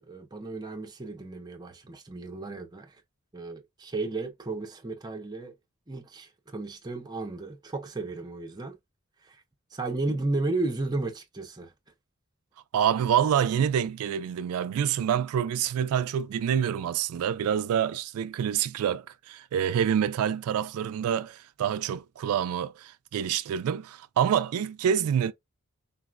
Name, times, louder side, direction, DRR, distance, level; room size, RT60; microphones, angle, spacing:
voice 1, 0.1-3.0 3.3-5.5 5.9-8.8 9.2-9.4 9.7-11.7, right 2 dB, 20° right, 0.5 m, -33 dB
voice 2, 12.7-25.3, right 8 dB, 85° right, 0.3 m, -27 dB
3.9 x 2.1 x 2.3 m
head